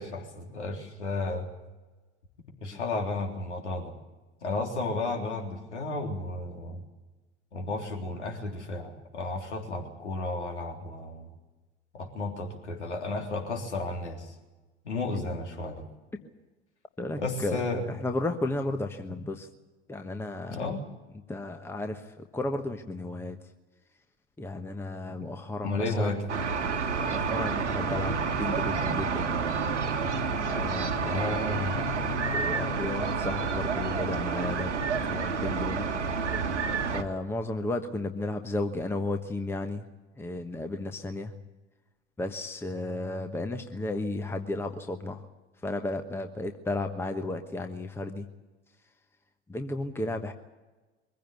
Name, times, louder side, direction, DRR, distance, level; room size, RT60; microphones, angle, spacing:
voice 1, 0.0-1.5 2.6-3.9 4.4-6.8 7.5-11.3 11.9-14.3 14.8-15.9 17.2-17.8 20.5-20.8 25.6-26.3 31.0-31.8, left 2 dB, 75° left, 2 dB, 3.6 m, -33 dB
voice 2, 17.0-19.5 19.9-20.7 21.3-23.4 24.4-26.1 27.1-29.5 30.4-31.3 32.3-34.7 35.0-35.9 36.9-39.8 40.2-41.4 42.2-45.2 45.6-48.3 49.5-50.3, left 2 dB, 5° left, 6 dB, 1.2 m, -33 dB
sound 1, 26.3-37.0, right 4 dB, 80° right, 1.7 m, -29 dB
23.5 x 15.5 x 9.5 m, 1.2 s
figure-of-eight pair, 80°, 35 cm